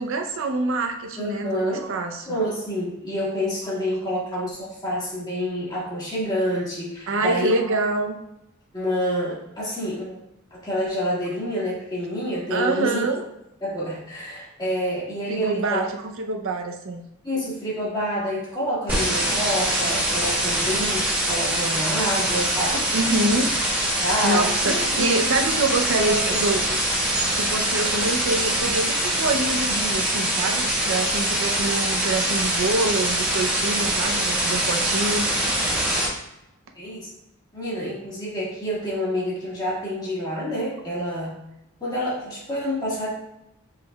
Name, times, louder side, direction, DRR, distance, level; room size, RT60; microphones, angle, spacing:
voice 1, 0.0-2.4 7.1-8.2 12.5-13.3 15.3-17.0 22.9-23.5 24.2-26.6 27.3-35.3, right 2 dB, 65° right, 4 dB, 0.6 m, -26 dB
voice 2, 1.2-1.8 2.3-7.6 8.7-10.2 10.5-13.1 13.6-15.8 17.2-22.9 24.0-25.5 26.1-26.8 30.8-30.9 36.7-37.1 37.5-41.3 41.8-43.1, equal, 20° left, -7 dB, 1.6 m, -28 dB
sound 1, 18.9-36.1, right 1 dB, 10° right, 1.3 m, -23 dB
7.2 x 3.2 x 2.2 m, 0.87 s
head